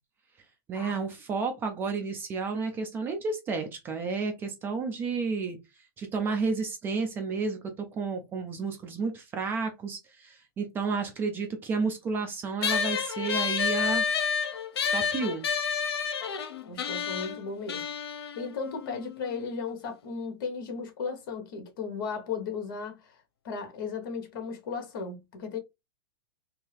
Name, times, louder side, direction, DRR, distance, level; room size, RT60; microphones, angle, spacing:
voice 1, 0.7-5.6 6.0-14.1 14.9-15.5, right 4 dB, 15° right, 0.5 m, -31 dB
sound 1, 12.6-19.4, left 6 dB, 90° left, 0.7 m, -30 dB
voice 2, 16.7-17.8 18.1-25.6, left 5 dB, 55° left, 1.1 m, -36 dB
2.8 x 2.7 x 3.2 m
supercardioid pair, 160°, 13 cm